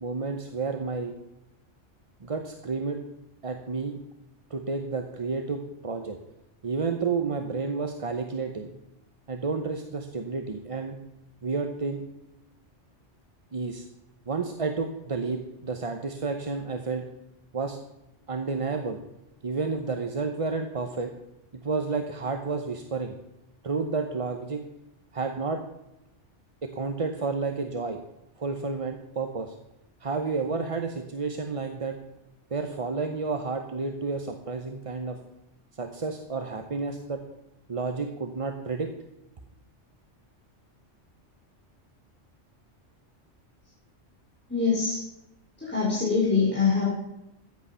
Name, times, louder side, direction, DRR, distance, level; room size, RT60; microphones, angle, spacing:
voice 1, 0.0-1.2 2.2-3.0 3.4-4.0 4.5-6.2 6.6-8.7 9.3-11.0 11.4-12.0 13.5-13.8 14.3-17.0 17.5-17.8 18.3-19.0 19.4-21.1 21.5-23.1 23.6-24.7 25.1-25.6 26.6-28.0 28.4-29.5 30.0-32.0 32.5-35.2 35.7-37.2 37.7-38.9, right 4 dB, 30° right, 5 dB, 0.8 m, -31 dB
voice 2, 44.5-45.0 45.6-46.8, left 5 dB, 10° left, -8 dB, 4.1 m, -24 dB
14.0 x 8.6 x 5.6 m, 0.92 s
omnidirectional pair, 1.3 m